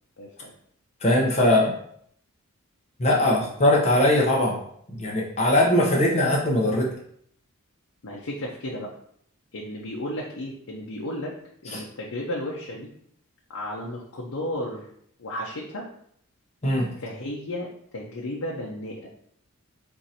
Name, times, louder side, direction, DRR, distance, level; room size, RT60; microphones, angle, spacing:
voice 1, 0.2-0.5 3.2-3.4 8.0-8.9 9.5-11.4 11.6-12.9 13.5-14.9 15.2-15.9 17.0-19.1, left 1 dB, 75° left, -2 dB, 0.7 m, -33 dB
voice 2, 1.0-1.7 3.0-4.6 4.9-6.9 11.7-11.8 16.6-16.9, left 1 dB, 30° left, -2 dB, 0.8 m, -20 dB
4.6 x 2.6 x 4.1 m, 0.66 s
head